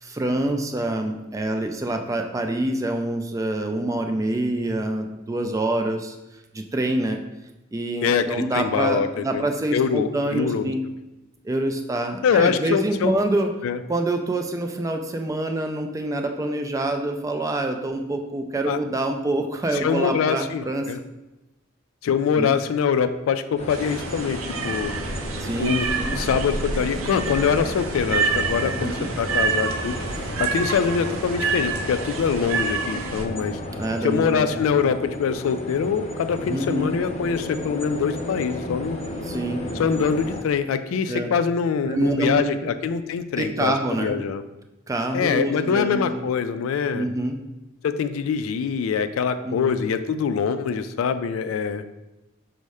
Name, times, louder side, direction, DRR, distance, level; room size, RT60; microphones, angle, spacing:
voice 1, 0.0-6.2 6.5-7.2 7.7-10.9 11.4-13.5 13.9-20.9 22.4-22.5 25.4-26.2 28.8-29.1 33.8-34.6 36.5-36.9 39.3-39.7 41.1-41.3 41.9-42.4 43.4-44.2 44.9-46.3 46.9-47.4 49.4-49.8, right 1 dB, 15° right, 4 dB, 0.3 m, -26 dB
voice 2, 8.0-9.4 9.7-10.7 12.2-13.1 13.6-13.8 18.7-18.8 19.7-21.0 22.0-24.9 25.6-30.0 30.4-33.6 34.0-39.0 39.8-44.4 45.1-47.1 47.8-51.8, left 6 dB, 80° left, 10 dB, 0.3 m, -24 dB
sound 1, 23.6-40.4, left 1 dB, 30° left, 0.6 m, -33 dB
sound 2, 23.7-33.3, right 5 dB, 80° right, 0.4 m, -28 dB
5.3 x 2.1 x 4.8 m, 1.0 s
head